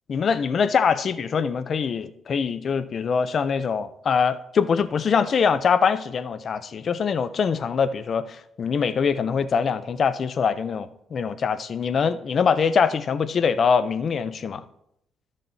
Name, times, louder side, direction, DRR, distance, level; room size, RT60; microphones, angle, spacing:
voice 1, 0.1-14.6, left 6 dB, 50° left, 0.6 m, -23 dB
13.5 x 7.2 x 2.7 m
cardioid pair, 90°, 0 cm